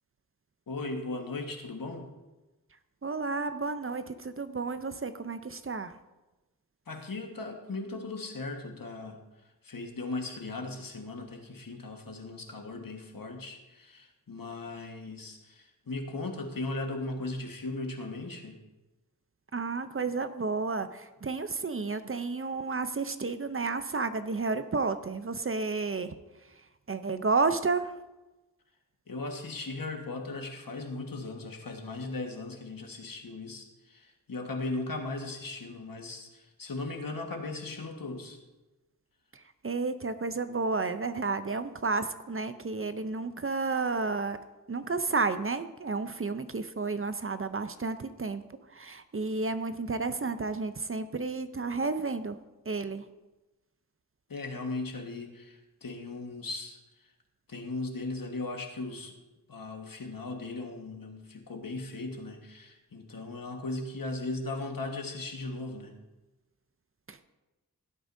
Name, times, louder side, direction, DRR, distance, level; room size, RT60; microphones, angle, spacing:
voice 1, 0.7-2.1 6.9-9.2 9.6-18.6 29.1-38.4 54.3-56.8 57.5-59.1 59.5-66.0, left 2 dB, 70° left, 3 dB, 1.5 m, -37 dB
voice 2, 3.0-5.9 19.5-26.2 26.9-27.9 39.3-44.4 44.7-48.4 48.7-52.4 52.7-53.0 67.1-67.2, right 4 dB, 35° right, 11 dB, 0.6 m, -31 dB
16.5 x 8.7 x 2.7 m, 1.1 s
wide cardioid pair, 65°, 36 cm